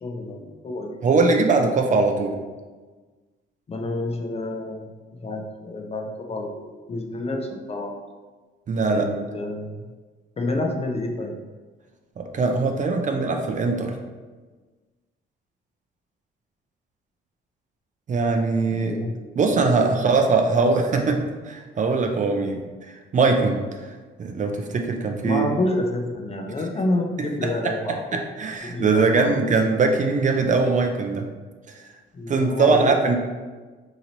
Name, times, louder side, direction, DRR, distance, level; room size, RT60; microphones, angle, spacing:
voice 1, 0.0-1.4 3.7-4.9 5.2-8.0 8.9-9.8 10.4-11.4 18.7-19.2 19.8-19.9 25.2-28.2 28.7-29.3 32.1-33.2, left 2 dB, 30° left, 3 dB, 0.5 m, -29 dB
voice 2, 1.0-2.3 8.7-9.1 12.2-13.9 18.1-18.9 19.4-22.6 23.1-23.6 24.2-25.5 27.2-27.5 27.9-31.2 31.7-31.8 32.3-33.2, right 4 dB, 40° right, 3 dB, 0.4 m, -21 dB
2.9 x 2.8 x 3.9 m, 1.3 s
cardioid pair, 90°, 20 cm